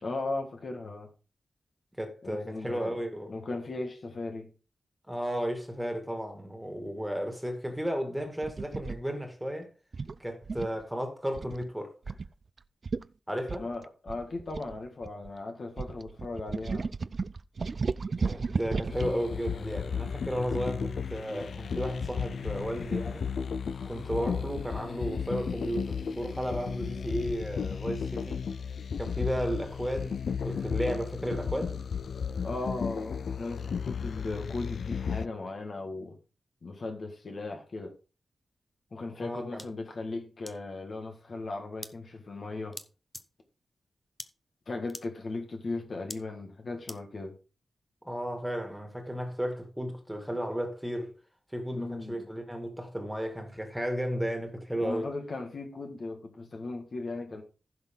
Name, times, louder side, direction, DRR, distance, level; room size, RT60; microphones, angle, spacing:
voice 1, 0.0-1.1 2.2-3.0 3.3-4.5 13.6-16.9 32.4-36.2 36.6-37.9 38.9-42.8 44.7-47.4 51.7-52.3 54.8-57.4, left 2 dB, 50° left, 1.7 m, -37 dB
voice 2, 2.0-3.3 5.1-9.7 10.2-11.9 13.3-13.7 17.7-17.8 18.1-23.3 23.9-28.4 28.9-31.8 39.2-39.7 48.0-51.1 51.5-55.0, equal, 5° right, 2.2 m, -34 dB
sound 1, 8.4-9.0 9.9-10.8 11.3-11.6 12.1-12.3 12.6-12.7 12.8-13.1 13.5-15.3 15.8-19.1, right 4 dB, 45° right, 0.4 m, -34 dB
sound 2, 18.9-35.3, left 6 dB, 75° left, 0.4 m, -34 dB
sound 3, 39.6-39.7 40.5-40.6 41.8-41.9 42.7-42.9 43.1-43.2 44.2-44.3 44.9-45.0 46.1-46.2 46.9-47.0, left 1 dB, 10° left, 0.7 m, -41 dB
15.0 x 6.2 x 3.8 m
wide cardioid pair, 150°, 0 cm